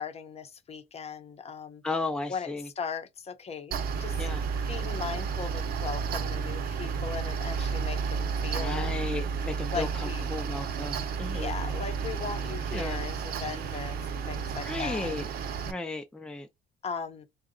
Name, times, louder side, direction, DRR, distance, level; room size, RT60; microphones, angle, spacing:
voice 1, 0.0-1.8 2.3-4.3 4.7-9.0 9.7-10.3 11.3-15.1 16.8-17.3, left 6 dB, 40° left, 0.8 m, -38 dB
voice 2, 1.8-2.7 4.2-4.4 8.5-11.5 12.7-13.0 14.6-15.3 15.6-16.5, left 3 dB, 5° left, 0.6 m, -34 dB
Mechanical fan, 3.7-15.7, right 6 dB, 65° right, 0.7 m, -32 dB
3.8 x 2.3 x 3.8 m
cardioid pair, 110°, 17 cm